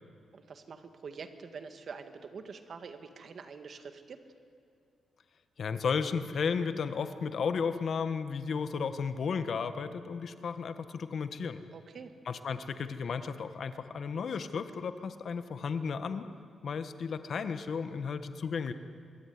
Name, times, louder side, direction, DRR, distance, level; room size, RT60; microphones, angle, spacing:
voice 1, 0.3-4.2 11.7-12.1, right 5 dB, 45° right, 8 dB, 1.8 m, -45 dB
voice 2, 5.6-11.6 12.3-16.3 16.6-18.7, left 5 dB, 50° left, 10 dB, 1.4 m, -34 dB
25.0 x 22.0 x 9.6 m, 2.4 s
wide cardioid pair, 155°, 0 cm